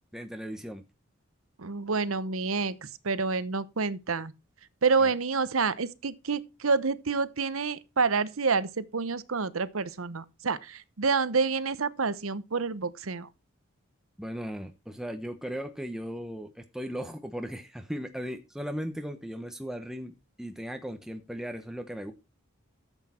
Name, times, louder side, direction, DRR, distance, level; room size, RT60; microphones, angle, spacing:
voice 1, 0.1-0.8 5.0-5.1 14.2-22.1, equal, ahead, 0.9 m, -37 dB
voice 2, 1.6-4.3 4.8-13.3, right 4 dB, 85° right, 0.9 m, -28 dB
13.5 x 8.2 x 4.3 m
head